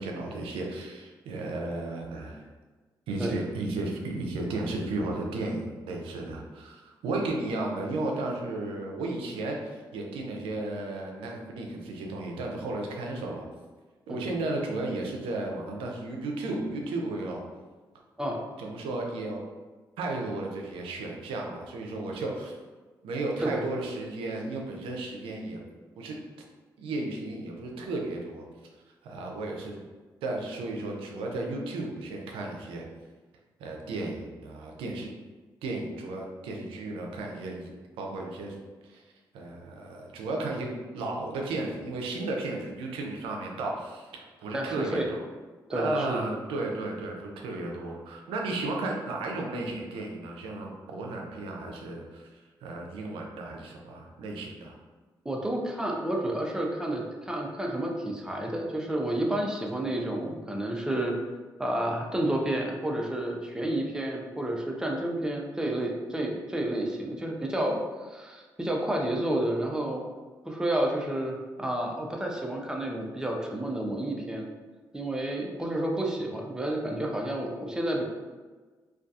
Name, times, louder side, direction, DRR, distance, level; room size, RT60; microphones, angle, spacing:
voice 1, 0.0-2.5 3.1-13.5 14.1-17.4 18.6-19.4 20.0-22.5 23.0-25.6 26.0-26.2 26.8-28.5 29.0-29.8 30.2-32.8 33.6-35.1 35.6-37.7 38.0-38.6 38.8-39.0 39.3-40.7 40.9-45.2 45.7-52.3 52.6-54.8, right 2 dB, 85° right, 0 dB, 0.5 m, -34 dB
voice 2, 44.5-45.1 45.7-46.2 55.2-61.2 61.6-70.0 70.4-74.5 74.9-78.0, right 1 dB, 10° right, 0 dB, 0.5 m, -30 dB
2.3 x 2.3 x 2.6 m, 1.4 s
supercardioid pair, 55°, 9 cm